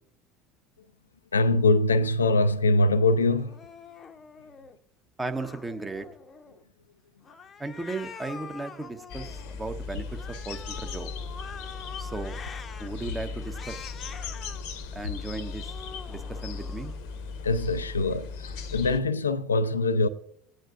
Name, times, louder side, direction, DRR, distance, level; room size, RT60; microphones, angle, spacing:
voice 1, 1.3-3.6 17.4-20.1, left 2 dB, 80° left, 0.4 m, -23 dB
Cat, 3.3-4.8 5.3-6.6 7.2-9.5 10.1-12.9 13.4-14.6 15.2-17.0, left 6 dB, 30° left, 0.8 m, -45 dB
voice 2, 5.2-6.1 7.6-10.1 10.4-11.1 12.0-12.4 12.8-13.8 14.9-15.7 16.1-16.9, right 3 dB, 15° right, 1.1 m, -36 dB
sound 1, 9.1-19.0, left 5 dB, 60° left, 0.9 m, -37 dB
19.5 x 9.0 x 2.5 m
figure-of-eight pair, 65°, 0 cm